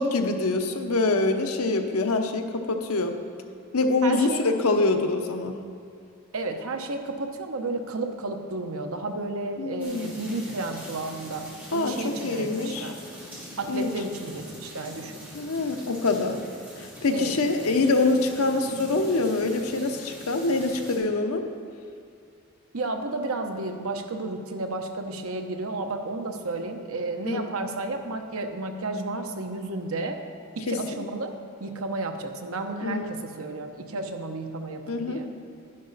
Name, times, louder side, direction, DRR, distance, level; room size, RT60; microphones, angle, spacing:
voice 1, 0.0-3.2 3.7-5.6 9.6-10.2 11.7-12.9 13.7-13.9 15.3-16.4 16.8-21.5 27.2-27.4 30.7-30.8 32.8-33.1 34.9-35.2, left 3 dB, 90° left, 5 dB, 0.9 m, -25 dB
voice 2, 4.0-4.4 6.3-13.0 13.6-15.2 17.1-17.4 22.7-30.2 30.5-31.3 31.6-35.3, right 2 dB, 75° right, 5 dB, 0.9 m, -32 dB
sound 1, 9.8-21.0, equal, 10° right, 2.8 m, -43 dB
11.0 x 11.0 x 4.1 m, 2.3 s
head